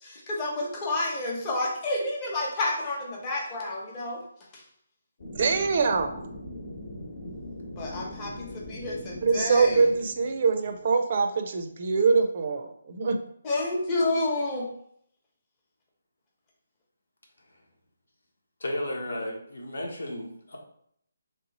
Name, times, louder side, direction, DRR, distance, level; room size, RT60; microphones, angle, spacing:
voice 1, 0.0-4.2 7.8-9.8 13.4-14.7, left 2 dB, 20° left, -2 dB, 0.8 m, -30 dB
sound 1, 5.2-11.1, left 1 dB, 50° left, 1.1 m, -41 dB
voice 2, 5.4-6.1 9.2-13.2, right 4 dB, 40° right, 7 dB, 0.4 m, -24 dB
voice 3, 18.6-20.6, left 1 dB, 85° left, 0 dB, 1.2 m, -33 dB
3.2 x 3.0 x 4.1 m, 0.68 s
hypercardioid pair, 170°, 0 cm